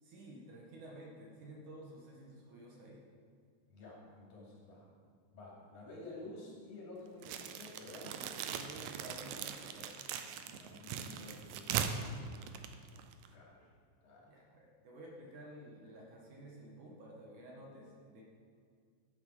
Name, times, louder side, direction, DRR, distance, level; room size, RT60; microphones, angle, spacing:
voice 1, 0.0-3.0 8.1-10.1 14.3-18.2, right 1 dB, 70° right, -2 dB, 3.1 m, -52 dB
voice 2, 3.7-4.9 5.3-8.1 10.5-12.3 13.3-13.7 14.0-14.3, left 2 dB, 65° left, -3 dB, 4.2 m, -51 dB
sound 1, 7.2-13.3, right 8 dB, 90° right, 2.4 m, -40 dB
15.0 x 8.6 x 5.6 m, 2.2 s
omnidirectional pair, 3.8 m